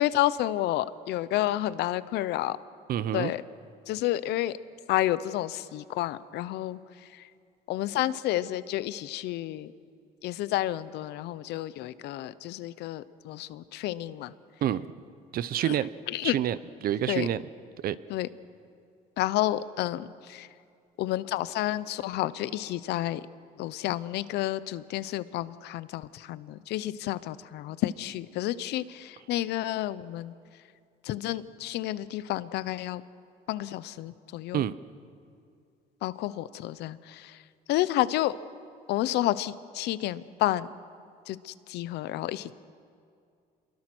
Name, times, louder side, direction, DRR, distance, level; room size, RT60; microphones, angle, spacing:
voice 1, 0.0-2.6 3.1-3.4 3.9-4.6 4.9-6.8 7.1-7.2 7.7-9.7 10.2-14.3 15.7-15.8 16.1-16.3 17.1-17.3 18.1-18.3 19.2-20.5 21.0-23.2 23.6-30.3 31.0-33.0 33.5-34.7 36.0-37.4 37.7-38.4 38.9-40.7 41.3-42.5, left 14 dB, 80° left, 16 dB, 0.8 m, -30 dB
voice 2, 2.9-3.3 14.6-14.9 15.3-15.9 16.2-17.4 17.8-18.0 34.5-34.7, right 11 dB, 60° right, 16 dB, 0.8 m, -28 dB
27.5 x 22.5 x 6.2 m, 2.3 s
cardioid pair, 110°, 17 cm